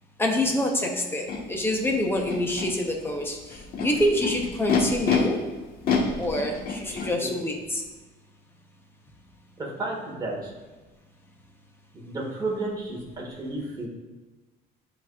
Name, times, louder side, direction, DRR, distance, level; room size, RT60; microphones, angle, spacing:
voice 1, 0.2-5.5 6.2-7.8, left 1 dB, 10° left, 1 dB, 0.7 m, -26 dB
Animal, 1.3-1.4 2.1-2.7 3.5-5.2 5.8-7.1, left 7 dB, 55° left, 1.3 m, -27 dB
voice 2, 9.6-10.5 11.9-13.9, right 2 dB, 20° right, -3 dB, 1.6 m, -32 dB
10.5 x 4.0 x 2.3 m, 1.2 s
cardioid pair, 165°, 19 cm